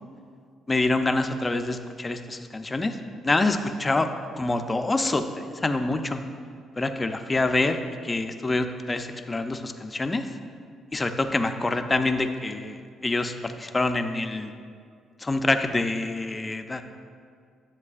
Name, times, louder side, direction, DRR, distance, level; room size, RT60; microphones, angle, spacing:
voice 1, 0.7-3.0 3.2-4.1 4.4-6.2 6.8-10.3 10.9-14.5 15.2-16.8, left 2 dB, 20° left, 7 dB, 0.5 m, -26 dB
11.0 x 7.2 x 2.4 m, 2.2 s
cardioid pair, 90°, 0 cm